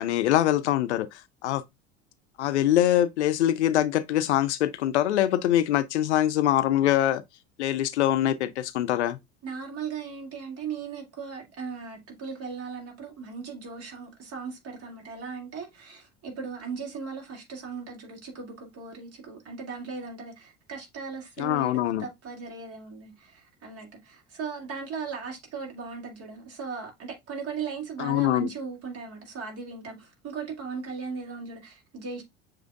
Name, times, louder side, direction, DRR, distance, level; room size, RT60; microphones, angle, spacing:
voice 1, 0.0-1.6 2.4-7.2 7.6-9.2 21.4-22.1 28.0-28.5, left 12 dB, 80° left, 0.6 m, -24 dB
voice 2, 9.4-32.2, right 5 dB, 45° right, 2.3 m, -38 dB
7.2 x 3.1 x 2.3 m
hypercardioid pair, 70°, 34 cm